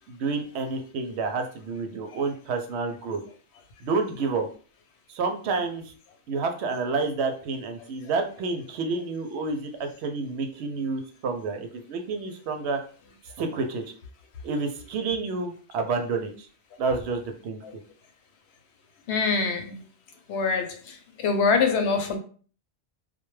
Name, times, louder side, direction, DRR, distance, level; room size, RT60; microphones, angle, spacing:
voice 1, 0.1-3.2 3.8-4.5 5.1-5.8 6.3-12.8 13.4-13.8 14.4-16.5 16.8-17.6, right 4 dB, 90° right, 5 dB, 0.8 m, -29 dB
voice 2, 19.1-19.8 20.3-22.2, left 4 dB, 90° left, 5 dB, 0.9 m, -25 dB
2.2 x 2.1 x 3.1 m, 0.41 s
omnidirectional pair, 1.1 m